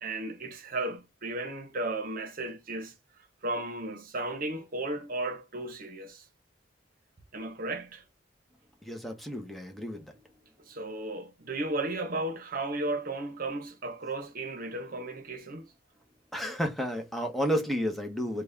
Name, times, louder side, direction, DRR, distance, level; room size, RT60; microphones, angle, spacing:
voice 1, 0.0-2.9 3.4-6.2 7.3-8.0 10.7-15.7, right 2 dB, 50° right, 0.9 m, -34 dB
voice 2, 8.8-10.2 16.3-18.4, equal, ahead, 0.8 m, -31 dB
4.0 x 2.3 x 3.3 m
head